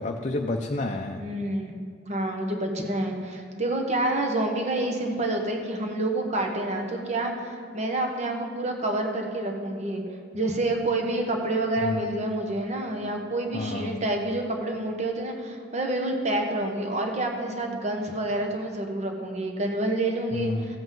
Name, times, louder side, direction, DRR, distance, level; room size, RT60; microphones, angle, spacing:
voice 1, 0.0-1.2 11.8-12.1 13.5-14.0 20.3-20.7, left 2 dB, 40° left, 2 dB, 0.5 m, -30 dB
voice 2, 1.2-1.7 2.1-10.0 10.3-20.8, right 1 dB, 35° right, 2 dB, 1.1 m, -28 dB
16.0 x 7.9 x 3.8 m, 2.2 s
head